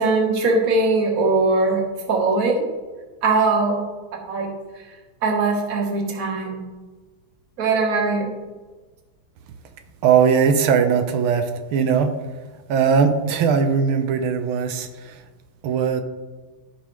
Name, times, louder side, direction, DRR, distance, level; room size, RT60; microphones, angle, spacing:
voice 1, 0.0-1.8 2.1-2.7 3.2-3.8 4.3-4.5 5.2-6.6 7.6-8.4, right 3 dB, 45° right, 2 dB, 1.6 m, -20 dB
voice 2, 10.0-12.2 12.7-15.2 15.6-16.0, right 6 dB, 90° right, 7 dB, 1.6 m, -19 dB
15.0 x 5.5 x 3.1 m, 1.3 s
omnidirectional pair, 2.2 m